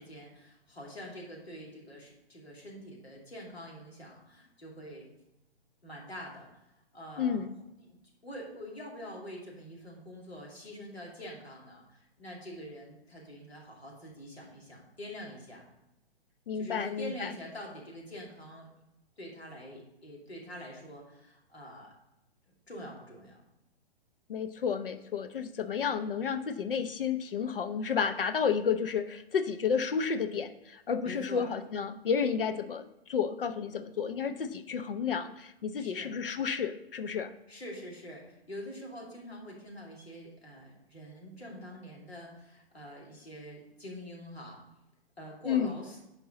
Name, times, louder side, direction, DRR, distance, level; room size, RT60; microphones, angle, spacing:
voice 1, 0.0-5.1 5.8-6.6 6.9-7.4 8.2-15.6 16.5-18.7 19.2-21.9 22.7-23.4 31.0-31.5 35.8-36.1 37.5-44.6 45.2-46.0, equal, 80° left, -3 dB, 2.6 m, -45 dB
voice 2, 7.2-7.5 16.5-17.3 24.3-37.3 45.5-45.7, left 6 dB, 60° left, 9 dB, 0.7 m, -31 dB
11.0 x 4.6 x 3.8 m, 0.90 s
figure-of-eight pair, 120°, 31 cm